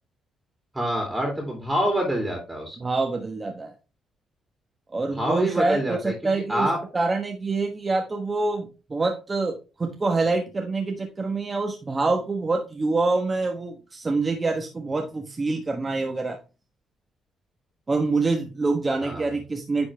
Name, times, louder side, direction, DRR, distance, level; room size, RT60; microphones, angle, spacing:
voice 1, 0.7-2.8 5.1-6.1 6.5-6.8 19.0-19.2, equal, 15° right, 1 dB, 2.6 m, -26 dB
voice 2, 2.8-3.7 4.9-16.4 17.9-19.9, right 3 dB, 30° right, 3 dB, 1.2 m, -26 dB
9.8 x 4.2 x 3.3 m, 0.31 s
cardioid pair, 90°, 0 cm